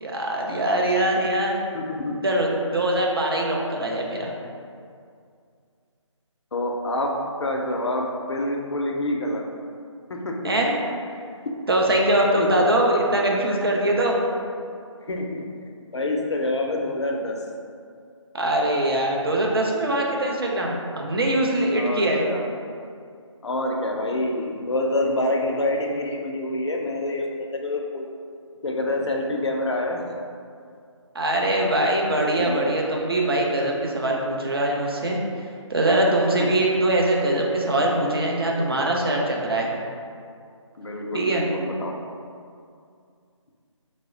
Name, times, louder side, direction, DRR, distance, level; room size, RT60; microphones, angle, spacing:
voice 1, 0.0-1.6 2.2-4.3 10.4-10.7 11.7-14.2 18.3-22.2 31.1-35.2 35.7-39.7 41.1-41.5, right 1 dB, 50° right, -1 dB, 0.5 m, -22 dB
voice 2, 1.7-2.2 6.5-7.1 7.4-9.4 10.1-10.3 12.4-12.7 14.6-14.7 15.1-15.4 15.9-17.4 21.8-22.5 23.4-28.1 28.6-30.0 32.2-32.7 36.4-36.5 40.8-41.9, left 1 dB, 60° left, 1 dB, 0.4 m, -27 dB
3.1 x 2.0 x 3.6 m, 2.3 s
figure-of-eight pair, 175°, 16 cm